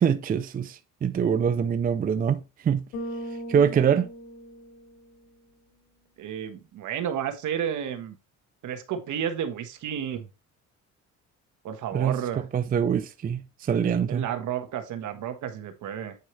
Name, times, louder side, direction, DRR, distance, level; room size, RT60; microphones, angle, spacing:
voice 1, 0.0-2.8 3.5-4.1 11.9-12.2 12.5-14.2, right 7 dB, 30° right, 0.4 m, -24 dB
Bass guitar, 2.9-5.3, right 1 dB, 75° left, 2.6 m, -38 dB
voice 2, 6.2-8.2 8.6-10.3 11.6-12.4 14.1-16.1, right 9 dB, 65° right, 1.3 m, -31 dB
8.4 x 4.5 x 3.2 m
cardioid pair, 105°, 32 cm